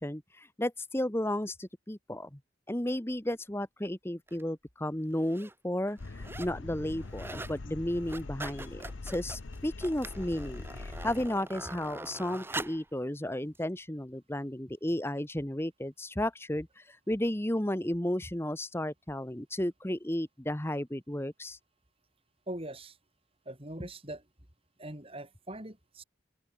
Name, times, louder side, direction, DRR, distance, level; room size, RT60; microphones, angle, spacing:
voice 1, 0.0-2.4 2.7-21.6, left 1 dB, 10° left, 1.2 m, -33 dB
sound 1, 4.3-4.4 5.1-5.5 5.9-6.6 6.9-7.6 7.9-12.9 13.6-13.7, right 2 dB, 10° right, 2.7 m, -43 dB
sound 2, 6.0-11.3, left 3 dB, 80° left, 0.9 m, -43 dB
voice 2, 22.5-23.0 23.5-24.2 24.8-26.0, right 1 dB, 30° right, 4.4 m, -42 dB
open air
head